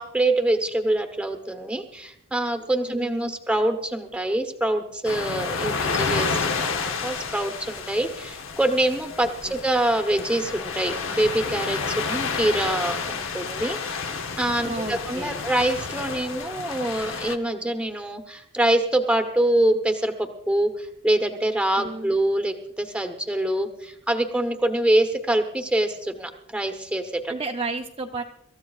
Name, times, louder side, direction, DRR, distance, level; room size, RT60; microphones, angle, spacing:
voice 1, 0.0-27.3, right 1 dB, 5° right, 5 dB, 0.9 m, -25 dB
voice 2, 2.9-3.4 9.5-9.6 14.6-15.5 21.8-22.2 27.3-28.2, right 3 dB, 25° right, 1 dB, 0.6 m, -32 dB
sound 1, 5.0-17.4, left 5 dB, 65° left, 0.9 m, -30 dB
26.5 x 14.0 x 2.4 m, 0.75 s
head